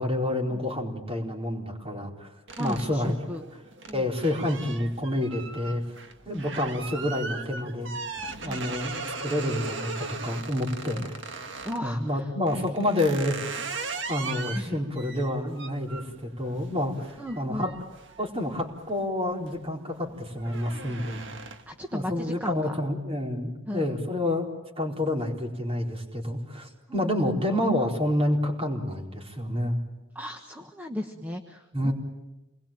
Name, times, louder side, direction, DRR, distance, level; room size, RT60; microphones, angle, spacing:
voice 1, 0.0-2.3 2.6-3.1 3.9-5.8 6.3-7.9 8.4-17.7 18.2-21.2 21.9-24.5 24.8-29.8 31.7-31.9, left 1 dB, 25° right, 0 dB, 4.4 m, -29 dB
sound 1, 2.5-11.9 12.5-18.9 19.3-19.7 20.0-21.8, right 4 dB, 55° right, 1.8 m, -39 dB
voice 2, 2.6-3.4 3.9-4.1 6.3-6.4 8.4-8.7 10.9-11.1 11.6-12.7 14.5-14.8 17.2-17.7 21.7-22.8 23.7-23.9 26.9-27.6 30.1-31.9, left 1 dB, 10° right, 3 dB, 1.2 m, -36 dB
28.0 x 21.0 x 9.0 m, 1.0 s
head